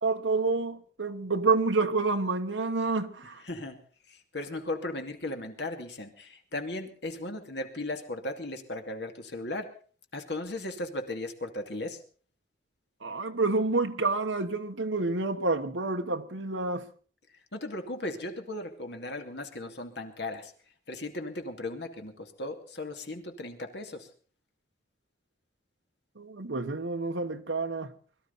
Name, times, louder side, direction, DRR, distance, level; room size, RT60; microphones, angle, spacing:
voice 1, 0.0-3.4 13.0-16.8 26.2-27.9, right 3 dB, 85° right, 1.3 m, -28 dB
voice 2, 3.4-3.8 4.1-9.7 10.1-12.0 17.5-20.5 20.9-24.1, left 2 dB, 65° left, 2.5 m, -37 dB
22.5 x 13.0 x 4.1 m
head